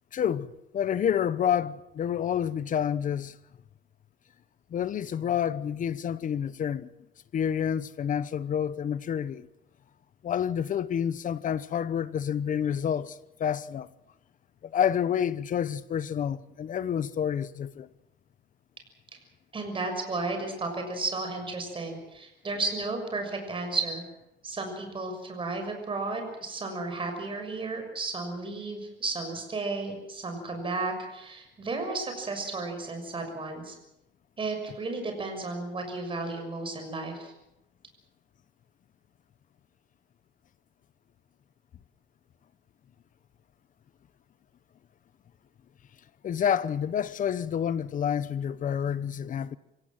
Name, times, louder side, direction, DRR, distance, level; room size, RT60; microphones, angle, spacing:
voice 1, 0.1-3.3 4.7-6.9 7.3-9.5 10.2-13.9 14.6-17.9 46.2-49.6, left 8 dB, 45° left, 0.9 m, -29 dB
voice 2, 19.5-24.0 24.4-33.8 34.4-37.3, right 3 dB, 30° right, 6.5 m, -33 dB
26.0 x 17.0 x 7.6 m
cardioid pair, 140°, 19 cm